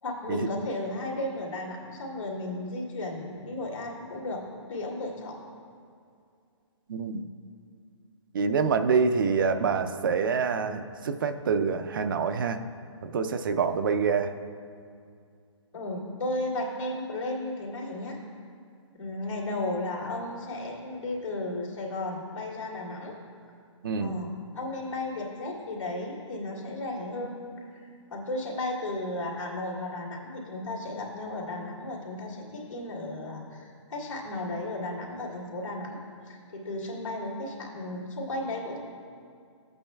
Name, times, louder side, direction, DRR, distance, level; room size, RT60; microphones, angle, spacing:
voice 1, 0.0-4.4 4.7-5.4 15.7-18.2 18.9-23.1 24.0-36.0 36.3-38.8, left 2 dB, 90° left, -3 dB, 2.4 m, -34 dB
voice 2, 6.9-7.3 8.3-12.6 13.0-14.3 23.8-24.2, right 5 dB, 45° right, 8 dB, 0.4 m, -26 dB
14.0 x 8.7 x 2.2 m, 2.3 s
hypercardioid pair, 160°, 16 cm